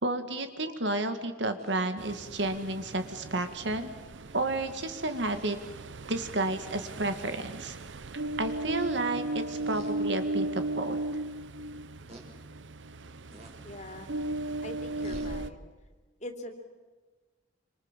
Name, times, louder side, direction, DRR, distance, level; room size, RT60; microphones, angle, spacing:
voice 1, 0.0-3.9 4.3-5.6 6.1-7.8 8.4-11.0, right 2 dB, 70° right, 8 dB, 2.1 m, -31 dB
sound 1, 1.5-2.6 4.3-4.4 5.3-5.6 6.4-6.6 7.0-7.2 9.6-9.9 10.5-10.6 12.1-12.3 13.3-13.6 15.0-15.4, right 1 dB, 35° right, 4.3 m, -47 dB
Ocean, 2.0-15.5, right 2 dB, 90° right, 0.8 m, -37 dB
voice 2, 13.6-14.1 14.6-15.6 16.2-16.5, left 1 dB, 40° left, 5 dB, 3.1 m, -42 dB
27.0 x 25.5 x 7.5 m, 1.3 s
head